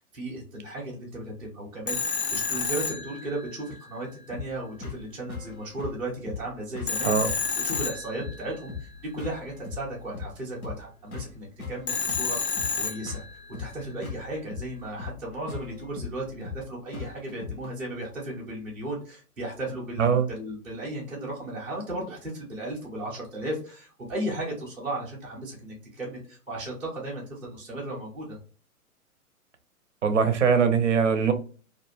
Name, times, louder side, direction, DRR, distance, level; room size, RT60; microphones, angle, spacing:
voice 1, 0.0-7.4 7.6-12.4 12.7-13.2 13.6-28.4, right 1 dB, 5° right, -9 dB, 0.5 m, -35 dB
Telephone, 1.9-3.8 6.9-8.7 11.9-13.5, left 5 dB, 45° left, 0.5 m, -30 dB
sound 1, 4.3-17.7, left 5 dB, 80° left, 0.9 m, -40 dB
voice 2, 30.0-31.3, right 6 dB, 55° right, 7 dB, 0.6 m, -21 dB
2.4 x 2.2 x 2.9 m, 0.39 s
figure-of-eight pair, 115°, 43 cm